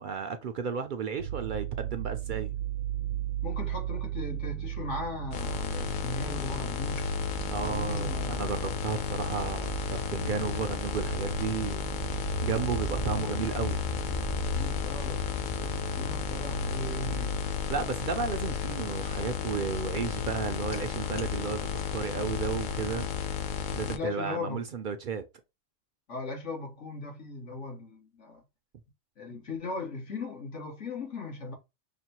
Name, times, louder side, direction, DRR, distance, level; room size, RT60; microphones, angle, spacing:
voice 1, 0.0-2.5 7.5-11.8 12.4-13.8 17.7-23.1 23.7-25.2, right 6 dB, 60° right, 0.5 m, -33 dB
sound 1, 1.2-17.5, right 12 dB, 90° right, 1.0 m, -37 dB
voice 2, 3.4-7.1 7.6-8.5 13.0-13.3 14.5-17.4 23.9-24.7 26.1-28.4 29.2-31.5, left 3 dB, 85° left, 1.8 m, -38 dB
sound 2, 5.3-24.0, left 7 dB, 55° left, 0.6 m, -33 dB
5.9 x 2.2 x 2.8 m
omnidirectional pair, 1.2 m